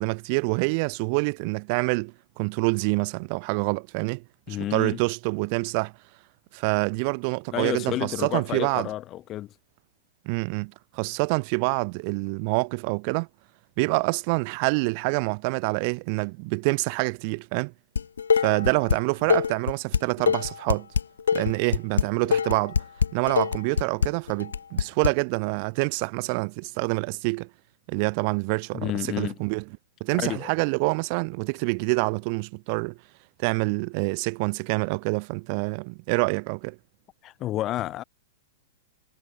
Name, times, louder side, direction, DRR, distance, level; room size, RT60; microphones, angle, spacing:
voice 1, 0.0-5.9 6.5-8.9 10.2-13.3 13.8-17.7 18.3-20.9 21.3-22.8 23.1-27.5 27.9-29.6 30.0-33.0 33.4-36.8, right 34 dB, 45° right, 3.5 m, -26 dB
voice 2, 4.5-4.9 7.5-9.5 28.7-29.3 30.2-30.5 37.2-38.0, left 14 dB, 35° left, 1.9 m, -30 dB
Dishes pots and pans, 18.0-19.0 19.3-25.1, left 6 dB, 75° left, 2.5 m, -23 dB
figure-of-eight pair, 105°, 0 cm